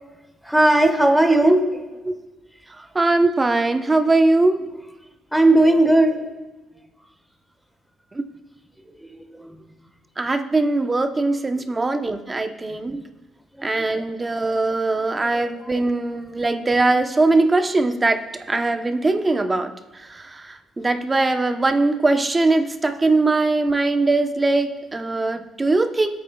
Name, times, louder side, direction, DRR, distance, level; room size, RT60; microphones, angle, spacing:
voice 1, 0.4-1.8 5.3-6.3 9.0-9.6 12.7-12.8 13.6-14.0 15.2-15.3, right 1 dB, ahead, 5 dB, 1.4 m, -18 dB
voice 2, 2.9-4.6 8.1-8.3 10.2-13.0 13.6-26.1, right 2 dB, 25° right, 6 dB, 0.9 m, -21 dB
19.5 x 8.6 x 2.3 m, 1.1 s
cardioid pair, 90°, 0 cm